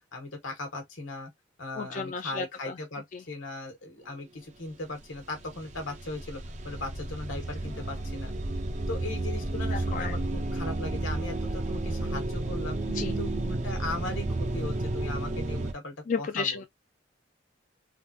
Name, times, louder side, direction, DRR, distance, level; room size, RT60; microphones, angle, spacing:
voice 1, 0.1-1.3 1.6-8.3 8.9-12.8 13.0-16.6, left 2 dB, 85° left, 1.3 m, -38 dB
voice 2, 1.7-2.8 3.1-3.2 7.7-7.9 9.6-10.1 12.9-13.2 16.1-16.6, left 5 dB, 40° left, 0.3 m, -33 dB
sound 1, 4.7-4.8 5.0-15.7, right 2 dB, 40° right, 0.5 m, -32 dB
3.5 x 2.3 x 2.7 m
head